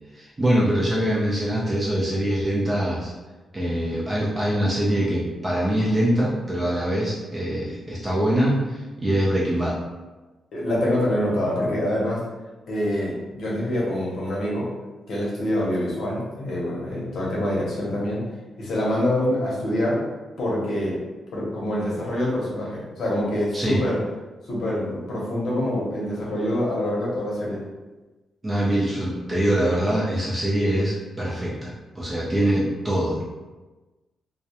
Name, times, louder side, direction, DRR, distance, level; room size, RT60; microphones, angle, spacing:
voice 1, 0.1-3.1 3.5-9.8 23.5-23.8 28.4-33.2, right 1 dB, 20° right, -6 dB, 0.4 m, -23 dB
voice 2, 10.5-12.2 12.7-14.7 15.1-18.2 18.6-20.1 20.4-21.0 21.3-24.0 24.5-27.6, left 1 dB, 65° left, -5 dB, 0.8 m, -25 dB
2.2 x 2.0 x 2.8 m, 1.2 s
cardioid pair, 140°, 0 cm